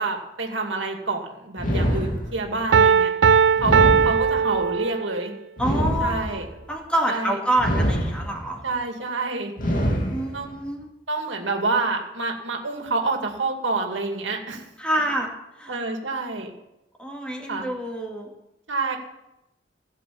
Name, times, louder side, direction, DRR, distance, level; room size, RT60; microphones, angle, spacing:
voice 1, 0.0-3.1 3.6-5.3 6.0-6.4 7.1-7.4 8.6-9.5 10.3-10.5 11.1-14.6 15.7-16.5 17.5-17.7 18.7-19.0, right 3 dB, 85° right, 3 dB, 2.5 m, -28 dB
sound 1, 1.6-2.6 3.6-4.6 5.6-6.6 7.6-8.6 9.6-10.6, equal, 50° left, 2.5 m, -25 dB
Piano, 2.7-5.3, right 6 dB, 65° right, 0.5 m, -18 dB
voice 2, 5.6-6.4 6.7-8.6 10.1-10.9 14.8-15.3 15.6-15.8 17.0-18.3, right 1 dB, 5° left, 0 dB, 2.4 m, -27 dB
16.0 x 7.3 x 8.6 m, 0.89 s
head